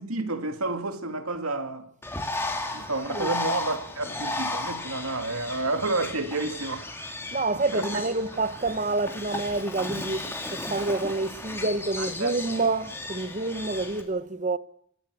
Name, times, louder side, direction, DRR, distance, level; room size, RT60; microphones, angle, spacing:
voice 1, 0.0-1.9 2.7-7.1 7.7-7.9 12.0-12.3, right 2 dB, 80° right, 2.3 m, -30 dB
Bird, 2.0-14.0, left 2 dB, 10° left, 2.4 m, -35 dB
voice 2, 7.3-14.6, right 3 dB, 35° right, 0.9 m, -28 dB
26.5 x 11.0 x 9.9 m
head